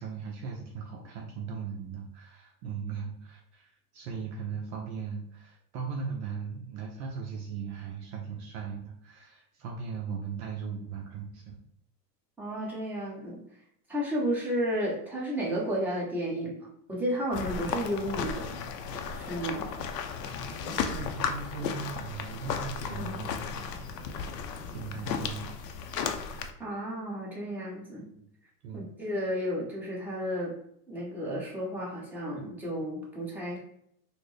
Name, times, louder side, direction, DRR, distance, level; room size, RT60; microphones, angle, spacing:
voice 1, 0.0-11.6 20.5-23.7 24.7-25.5 28.1-28.3 28.6-28.9, right 5 dB, 45° right, 0 dB, 0.6 m, -38 dB
voice 2, 12.4-13.4 13.9-18.6 19.1-19.7 26.6-28.1 28.7-30.6 30.9-33.6, equal, 5° right, -6 dB, 1.0 m, -32 dB
sound 1, 17.3-26.5, left 6 dB, 85° left, 0.6 m, -34 dB
4.1 x 2.1 x 3.2 m, 0.71 s
hypercardioid pair, 120°, 47 cm